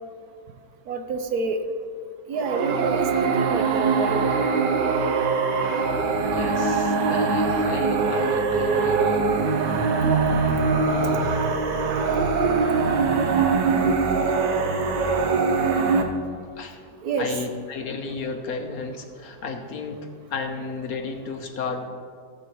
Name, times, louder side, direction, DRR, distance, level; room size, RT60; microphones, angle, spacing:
voice 1, 0.9-1.6 2.3-4.2 17.0-17.3, right 4 dB, 65° right, 6 dB, 1.1 m, -28 dB
sound 1, 2.4-16.0, right 4 dB, 90° right, 1.5 m, -22 dB
voice 2, 6.2-9.2 9.6-9.8 10.8-11.5 13.5-13.7 14.2-14.3 16.6-16.8 17.2-21.9, left 4 dB, 65° left, 4 dB, 1.3 m, -33 dB
16.5 x 7.6 x 3.1 m, 2.2 s
omnidirectional pair, 1.8 m